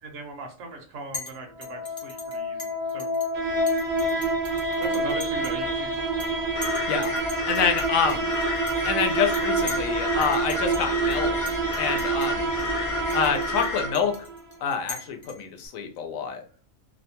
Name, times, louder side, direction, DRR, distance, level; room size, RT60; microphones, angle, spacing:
voice 1, 0.0-3.1 4.8-5.9 13.0-13.2, right 2 dB, 65° right, 2 dB, 1.0 m, -39 dB
Chink clink, 1.1-1.3 1.6-3.3 3.7-5.6 5.9-6.3 6.6-9.9 10.2-10.8 11.1-11.2 11.5-12.3 12.6-12.7 13.1-15.7, left 3 dB, 40° left, 0.4 m, -40 dB
sound 1, 1.4-14.4, right 2 dB, 40° right, 0.6 m, -27 dB
sound 2, 6.6-13.9, left 2 dB, 55° left, 1.0 m, -32 dB
voice 2, 7.5-8.3 8.8-11.4 11.8-12.4 13.1-14.1 14.6-16.4, left 6 dB, 85° left, 5 dB, 1.0 m, -27 dB
2.7 x 2.2 x 2.7 m, 0.41 s
omnidirectional pair, 1.4 m